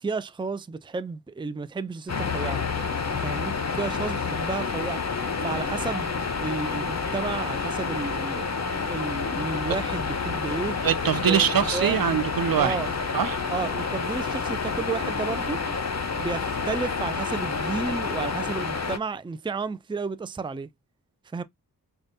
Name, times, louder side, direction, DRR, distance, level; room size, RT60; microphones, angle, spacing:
voice 1, 0.0-2.6 3.2-5.0 5.4-6.1 6.4-8.5 8.9-10.8 11.3-11.5 11.7-12.0 12.6-12.9 13.5-15.6 16.2-20.7 21.3-21.4, right 4 dB, 15° right, 0.5 m, -32 dB
sound 1, 2.1-19.0, left 5 dB, 45° left, 1.0 m, -29 dB
voice 2, 10.8-12.8 13.1-13.4, right 8 dB, 65° right, 0.7 m, -23 dB
5.1 x 2.4 x 2.6 m
cardioid pair, 50°, 38 cm